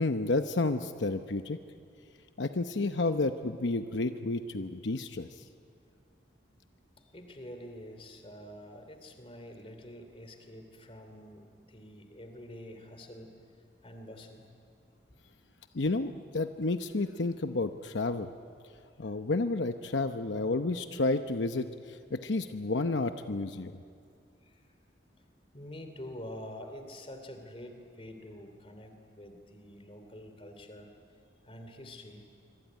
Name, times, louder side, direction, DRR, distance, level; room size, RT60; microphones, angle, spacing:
voice 1, 0.0-1.6 2.4-5.4 15.7-18.3 19.0-23.7, left 2 dB, 75° left, 8 dB, 0.8 m, -31 dB
voice 2, 7.1-13.4 13.8-14.5 24.4-24.7 25.5-30.9 31.4-32.3, left 1 dB, 30° left, 6 dB, 2.9 m, -47 dB
25.0 x 24.5 x 9.4 m, 2.4 s
head